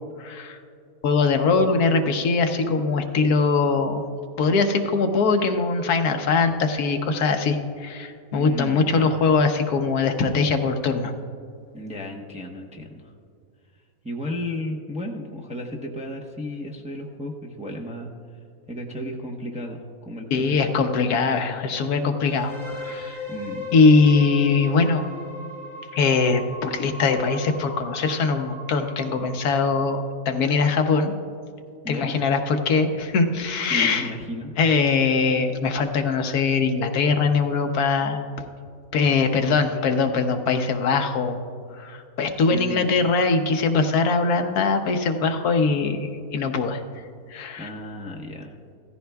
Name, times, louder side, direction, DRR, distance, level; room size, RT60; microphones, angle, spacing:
voice 1, 0.2-0.6 1.0-4.1 4.4-11.1 20.3-23.2 23.7-25.0 25.9-31.1 31.9-34.1 34.6-38.2 38.9-41.4 41.8-46.8 47.3-47.7, left 4 dB, 80° left, 5 dB, 1.3 m, -22 dB
voice 2, 8.3-9.2 11.7-13.1 14.0-18.1 18.7-20.7 23.3-23.7 31.8-32.1 33.6-34.5 39.1-39.6 42.5-42.9 47.6-48.5, left 1 dB, 5° right, 0 dB, 0.7 m, -34 dB
sound 1, 22.2-30.0, left 1 dB, 65° right, 4.0 m, -38 dB
16.5 x 14.0 x 2.3 m, 2.4 s
omnidirectional pair, 1.6 m